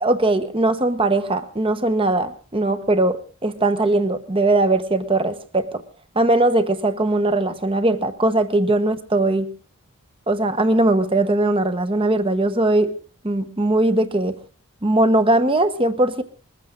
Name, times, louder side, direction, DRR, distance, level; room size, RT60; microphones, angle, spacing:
voice 1, 0.0-5.8 6.1-9.5 10.3-12.9 13.2-14.4 14.8-16.2, right 2 dB, 25° right, 11 dB, 1.0 m, -20 dB
21.5 x 14.5 x 3.8 m, 0.38 s
head